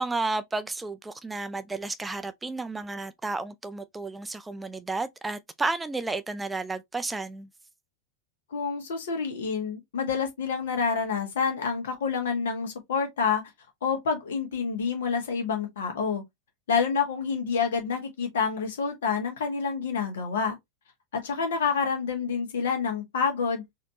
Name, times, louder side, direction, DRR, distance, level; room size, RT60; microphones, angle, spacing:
voice 1, 0.0-7.5, right 3 dB, 10° right, 0.4 m, -32 dB
voice 2, 8.5-13.4 13.8-16.2 16.7-20.5 21.1-23.6, left 5 dB, 60° left, 1.5 m, -28 dB
4.1 x 2.9 x 2.8 m
figure-of-eight pair, 85°, 0 cm